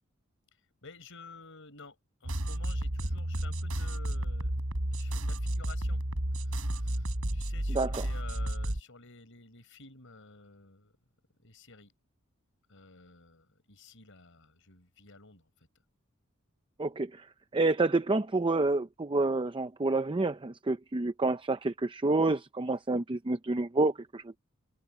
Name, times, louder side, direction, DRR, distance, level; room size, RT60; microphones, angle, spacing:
voice 1, 0.5-4.5 4.9-6.0 6.4-10.9 11.4-11.9 12.7-15.7, left 4 dB, 65° left, 6.7 m, -52 dB
sound 1, 2.2-8.8, right 1 dB, 80° right, 3.6 m, -32 dB
voice 2, 16.8-17.3 17.5-24.4, right 2 dB, 25° right, 0.6 m, -28 dB
head